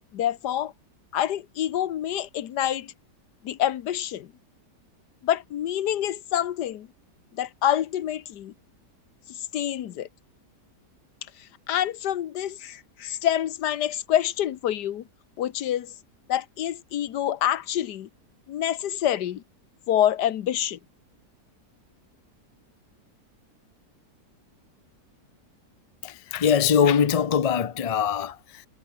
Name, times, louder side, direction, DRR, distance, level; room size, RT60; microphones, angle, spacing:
voice 1, 0.1-0.7 1.1-2.9 3.4-4.3 5.2-6.9 7.4-8.5 9.3-10.1 11.7-15.0 15.4-15.9 16.3-18.1 18.5-19.4 19.9-20.8, left 11 dB, 75° left, 1.5 m, -27 dB
voice 2, 26.0-28.7, left 7 dB, 55° left, 0.4 m, -22 dB
omnidirectional pair, 1.8 m